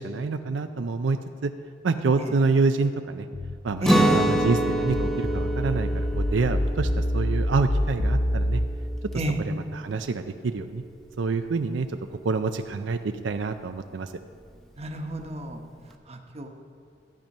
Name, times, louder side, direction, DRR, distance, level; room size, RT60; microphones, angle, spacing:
voice 1, 0.0-1.5 1.8-3.3 3.6-8.6 9.4-10.8 11.2-11.9 12.2-14.1, right 4 dB, 80° right, 8 dB, 0.5 m, -27 dB
sound 1, 3.3-8.7, equal, 75° left, 1.0 m, -27 dB
Guitar, 3.8-9.7, right 1 dB, ahead, 0.7 m, -27 dB
voice 2, 14.8-15.6 16.1-16.5, right 1 dB, 35° right, 3 dB, 1.1 m, -29 dB
13.5 x 8.9 x 5.4 m, 2.2 s
head